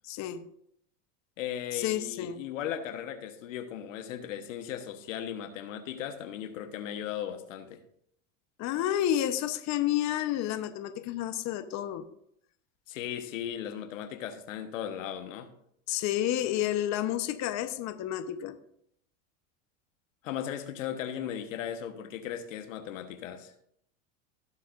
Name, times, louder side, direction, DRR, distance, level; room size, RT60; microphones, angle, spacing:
voice 1, 0.0-0.4 1.7-2.4 8.6-12.0 15.9-18.5, left 12 dB, 45° left, 9 dB, 1.0 m, -30 dB
voice 2, 1.4-7.8 12.9-15.5 20.2-23.5, left 10 dB, 85° left, 8 dB, 1.2 m, -37 dB
18.0 x 7.5 x 2.6 m, 0.71 s
supercardioid pair, 105°, 38 cm